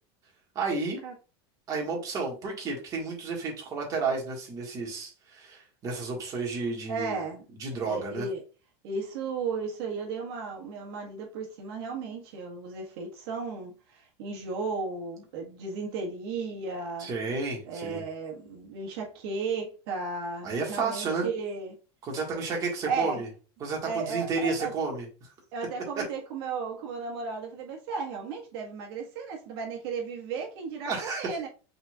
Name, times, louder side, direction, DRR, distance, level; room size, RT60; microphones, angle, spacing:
voice 1, 0.5-1.0 1.7-7.2 7.5-8.3 17.0-18.0 20.4-21.3 22.0-23.3 23.6-25.1 30.9-31.3, right 4 dB, 25° right, 1.6 m, -31 dB
voice 2, 6.9-7.5 7.8-8.4 8.8-17.1 17.6-21.7 22.9-23.2 23.8-24.7 25.5-31.5, right 4 dB, 60° right, 1.5 m, -34 dB
5.7 x 3.9 x 2.3 m
supercardioid pair, 165°, 14 cm